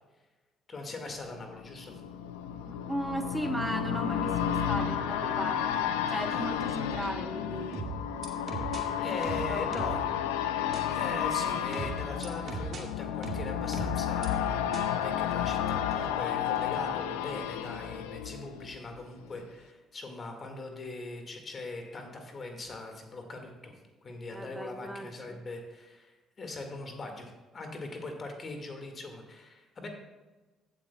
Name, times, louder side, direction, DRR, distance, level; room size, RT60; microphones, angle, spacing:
voice 1, 0.7-2.0 6.3-6.5 9.0-10.0 10.9-23.7 24.0-29.9, left 2 dB, 35° left, 4 dB, 1.9 m, -41 dB
sound 1, 1.2-19.0 19.4-19.5, left 9 dB, 70° left, 0.5 m, -32 dB
voice 2, 2.7-7.9 9.4-10.1 24.3-25.5, right 1 dB, 5° right, 7 dB, 1.1 m, -37 dB
sound 2, 7.7-8.8 9.2-10.0 10.7-10.8 11.7-12.8 13.2-14.3 14.7-14.8, right 4 dB, 45° right, 2.1 m, -37 dB
15.5 x 8.2 x 2.3 m, 1.2 s
figure-of-eight pair, 50°, 0 cm